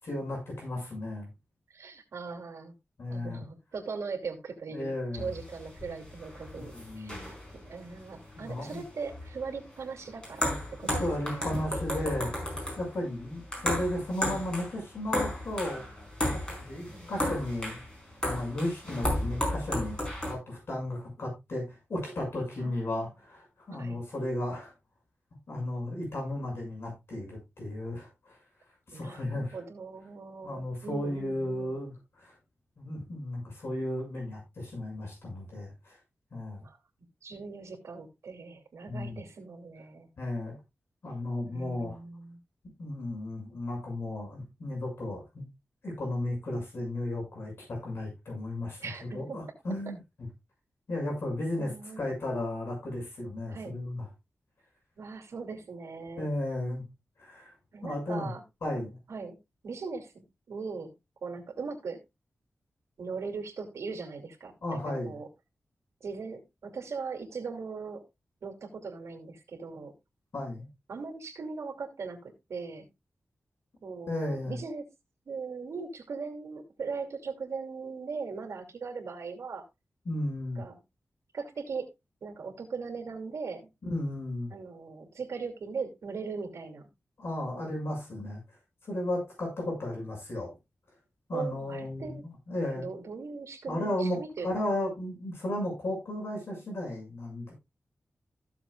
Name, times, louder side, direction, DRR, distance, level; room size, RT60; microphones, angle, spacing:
voice 1, 0.0-1.3 3.0-3.4 4.7-5.3 6.6-7.2 8.4-8.8 11.0-12.3 12.8-15.8 16.3-17.8 18.2-20.0 20.2-24.7 25.5-28.4 28.9-29.6 30.4-32.3 32.8-36.0 36.3-36.6 38.9-39.2 40.2-40.5 41.0-42.0 42.8-45.4 45.8-50.3 50.9-51.7 52.0-54.0 56.2-56.8 57.2-57.5 57.8-58.3 58.6-59.0 64.6-65.2 70.3-70.7 74.1-74.6 80.0-80.6 83.8-84.5 87.2-88.4 88.8-90.5 91.3-92.9 93.7-94.2 94.4-97.5, left 1 dB, 60° left, 0 dB, 6.2 m, -34 dB
voice 2, 1.7-2.7 3.1-7.1 7.5-11.8 16.8-17.1 22.6-23.1 23.8-24.0 28.9-31.8 36.6-36.8 37.2-40.1 41.5-42.4 48.8-49.4 51.6-52.1 53.5-53.8 55.0-56.3 57.7-58.4 59.1-59.4 59.6-60.9 61.2-62.0 63.0-65.3 66.0-68.0 68.4-70.0 70.9-72.9 73.8-74.9 75.3-79.6 80.6-80.8 81.3-81.9 82.2-83.7 84.5-86.9 91.3-92.2 92.7-94.7, right 4 dB, 90° right, 2 dB, 2.7 m, -39 dB
sound 1, 5.2-20.3, left 1 dB, 20° left, 4.6 m, -34 dB
15.5 x 7.0 x 2.4 m, 0.22 s
wide cardioid pair, 175°, 5 cm